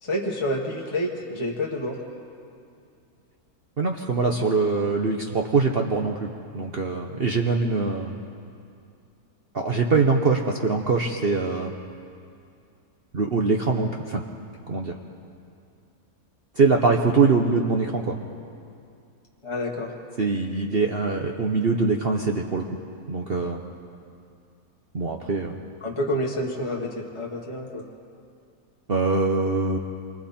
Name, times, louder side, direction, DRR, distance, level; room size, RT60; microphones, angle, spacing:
voice 1, 0.0-2.0 19.4-19.9 25.8-27.8, left 1 dB, 20° left, -2 dB, 1.6 m, -28 dB
voice 2, 3.8-6.3 6.5-8.1 9.5-11.7 13.1-14.2 14.7-14.9 16.6-18.2 20.2-22.7 23.1-23.6 24.9-25.5 28.9-29.8, right 4 dB, 45° right, 1 dB, 1.1 m, -23 dB
27.0 x 24.0 x 4.3 m, 2.4 s
omnidirectional pair, 1.7 m